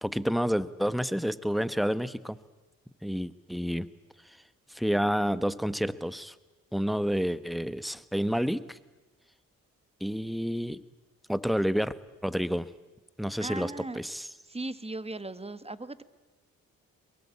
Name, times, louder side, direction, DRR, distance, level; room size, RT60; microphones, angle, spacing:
voice 1, 0.0-2.4 3.0-3.9 4.3-4.4 4.7-6.3 6.7-8.8 10.0-10.8 11.3-11.9 12.2-12.7 13.2-14.3, equal, ahead, 15 dB, 1.1 m, -29 dB
voice 2, 13.4-14.0 14.5-16.0, right 2 dB, 15° right, 14 dB, 1.5 m, -37 dB
22.5 x 22.5 x 8.5 m, 1.2 s
cardioid pair, 60°, 35 cm